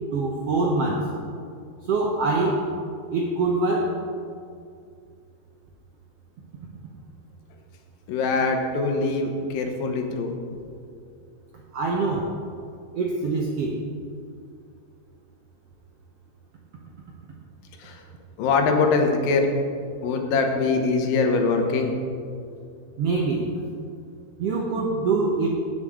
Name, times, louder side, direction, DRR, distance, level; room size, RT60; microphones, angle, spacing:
voice 1, 0.1-1.1 1.9-2.6 3.1-4.0 11.7-12.3 12.9-13.8 23.0-23.5 24.4-25.5, right 3 dB, 75° right, -2 dB, 1.4 m, -24 dB
voice 2, 8.1-10.3 17.8-17.9 18.4-19.5 20.0-21.9, left 4 dB, 90° left, 3 dB, 2.8 m, -23 dB
17.0 x 7.0 x 3.6 m, 2.3 s
omnidirectional pair, 3.9 m